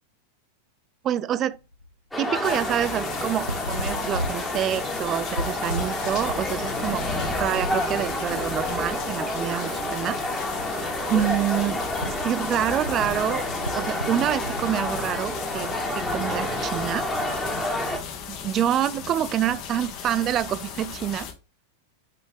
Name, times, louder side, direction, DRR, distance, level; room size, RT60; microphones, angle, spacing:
voice 1, 1.0-1.6 2.2-7.1 7.4-10.2 11.1-13.4 13.7-17.0 18.3-21.3, right 11 dB, 30° right, 0.4 m, -27 dB
sound 1, 1.5-1.9 2.3-2.5 3.3-7.9 8.2-8.4 9.2-9.3 9.6-15.9 16.7-17.1 19.2-20.3, equal, 90° right, 0.5 m, -37 dB
sound 2, 2.1-18.0, left 1 dB, 5° left, 1.4 m, -29 dB
sound 3, 2.4-21.3, left 6 dB, 40° left, 1.2 m, -36 dB
5.7 x 5.2 x 3.4 m
figure-of-eight pair, 90°, 0 cm